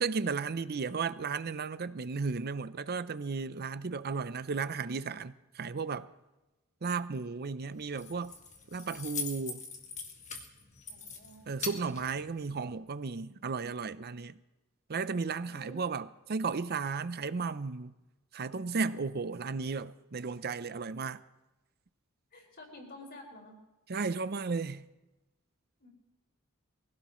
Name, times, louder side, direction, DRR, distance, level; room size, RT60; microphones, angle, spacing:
voice 1, 0.0-6.1 6.8-8.3 8.7-9.6 11.5-14.4 14.9-17.9 18.3-21.2 23.9-24.8, right 4 dB, 45° right, 0.6 m, -34 dB
Keys jangling, 7.7-12.8, left 5 dB, 35° left, 1.9 m, -42 dB
voice 2, 10.9-11.4 15.5-15.8 22.3-23.6 25.8-25.9, left 1 dB, 50° left, 4.9 m, -50 dB
23.5 x 17.0 x 3.1 m
head